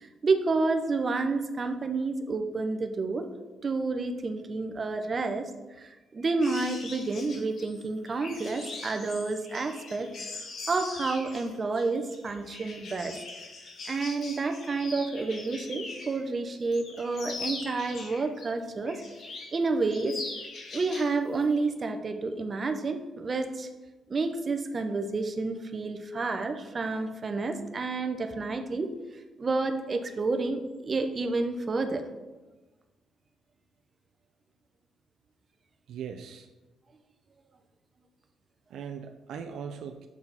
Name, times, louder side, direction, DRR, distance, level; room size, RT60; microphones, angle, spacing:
voice 1, 0.0-3.3 3.6-5.5 5.8-10.1 10.7-13.2 13.9-19.0 19.5-20.2 20.7-23.7 24.1-28.9 29.4-32.0, right 3 dB, 35° right, 6 dB, 0.7 m, -30 dB
sound 1, 6.4-16.2 16.6-18.4 18.8-19.6 19.9-21.1 21.4-21.6, left 3 dB, 60° left, 1.5 m, -41 dB
voice 2, 35.9-36.5 38.7-40.1, right 7 dB, 75° right, 6 dB, 0.4 m, -39 dB
7.1 x 4.7 x 4.0 m, 1.2 s
cardioid pair, 90°, 0 cm